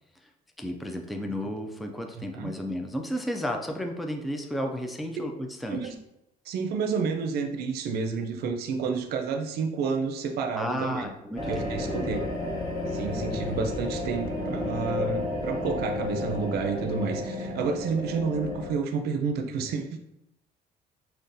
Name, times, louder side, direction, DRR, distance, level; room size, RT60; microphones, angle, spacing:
voice 1, 0.6-5.8 10.5-12.1, equal, ahead, 3 dB, 0.3 m, -33 dB
voice 2, 6.5-11.1 11.5-12.2 12.9-20.0, right 5 dB, 70° right, 5 dB, 0.5 m, -30 dB
sound 1, 11.4-18.7, left 2 dB, 20° left, 0.9 m, -32 dB
3.7 x 2.4 x 2.6 m, 0.84 s
cardioid pair, 110°, 17 cm